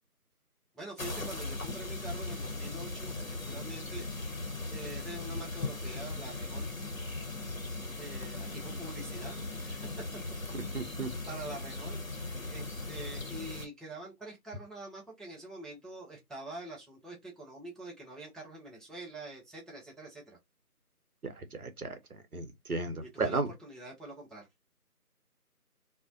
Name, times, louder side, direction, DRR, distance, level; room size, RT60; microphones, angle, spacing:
voice 1, 0.7-4.1 4.7-6.7 7.9-9.9 11.0-20.4 23.0-24.5, right 2 dB, ahead, 0.5 m, -45 dB
sound 1, 1.0-13.7, left 2 dB, 60° left, 0.8 m, -38 dB
voice 2, 10.5-11.1 21.6-21.9 22.3-23.5, right 3 dB, 65° right, 0.7 m, -34 dB
2.5 x 2.0 x 2.6 m
figure-of-eight pair, 175°, 46 cm